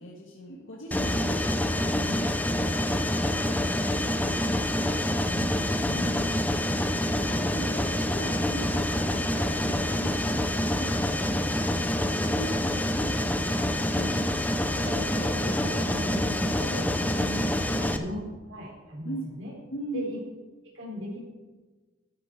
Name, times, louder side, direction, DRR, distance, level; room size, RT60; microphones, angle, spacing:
voice 1, 0.0-4.9 5.8-6.6 7.1-13.3 19.0-19.3 19.7-20.1, equal, 70° left, -3 dB, 1.7 m, -40 dB
Mechanisms, 0.9-18.0, left 1 dB, 10° left, 0.7 m, -27 dB
voice 2, 13.9-14.4 14.7-17.4 17.7-19.5 19.9-20.2 20.7-21.2, equal, 75° right, -4 dB, 4.2 m, -37 dB
12.5 x 10.5 x 4.8 m, 1.3 s
head